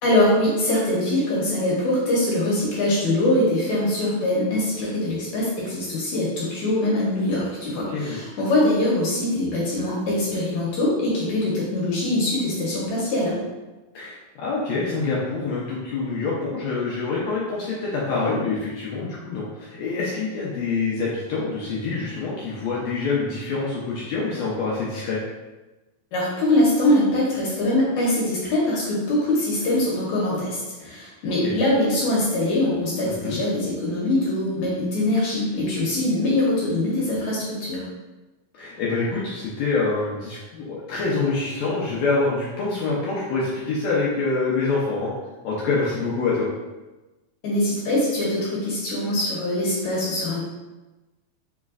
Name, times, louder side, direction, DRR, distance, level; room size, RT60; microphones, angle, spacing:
voice 1, 0.0-13.4 26.1-37.8 47.4-50.5, left 1 dB, 70° left, -5 dB, 1.9 m, -23 dB
voice 2, 7.7-8.2 14.0-25.2 31.3-31.5 33.0-33.4 38.5-45.1 45.4-46.5, left 3 dB, 90° left, -6 dB, 1.6 m, -26 dB
4.8 x 3.1 x 2.4 m, 1.1 s
omnidirectional pair, 3.8 m